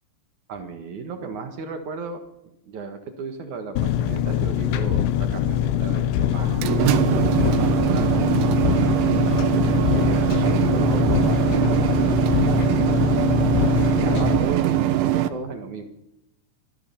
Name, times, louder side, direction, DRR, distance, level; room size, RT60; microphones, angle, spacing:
voice 1, 0.5-2.2 2.6-13.1 13.7-15.8, right 5 dB, 60° right, 6 dB, 2.0 m, -35 dB
Engine, 3.8-14.4, left 10 dB, 80° left, 3.3 m, -23 dB
sound 1, 6.4-15.3, right 12 dB, 80° right, 3.5 m, -22 dB
24.5 x 16.5 x 7.0 m, 0.88 s
omnidirectional pair, 5.6 m